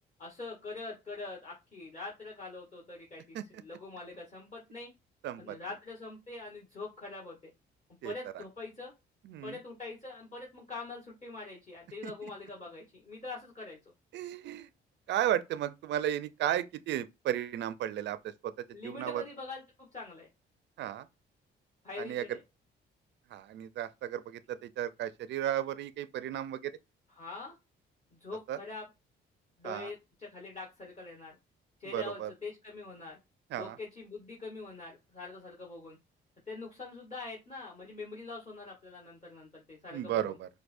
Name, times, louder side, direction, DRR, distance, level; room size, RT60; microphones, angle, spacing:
voice 1, 0.2-4.9 5.4-7.5 8.0-8.9 9.4-13.8 18.7-20.3 21.8-22.4 27.1-27.6 28.1-28.9 29.6-31.4 31.8-33.2 33.5-36.0 36.5-40.3, left 3 dB, 35° left, 1.3 m, -44 dB
voice 2, 5.2-5.5 8.0-8.1 9.2-9.6 12.0-12.1 14.1-14.7 15.1-19.2 20.8-21.1 22.0-22.4 23.3-26.7 28.5-28.6 29.6-29.9 31.9-32.3 33.5-33.8 39.9-40.5, right 11 dB, 65° right, 0.4 m, -34 dB
4.6 x 2.1 x 2.5 m
cardioid pair, 90°, 20 cm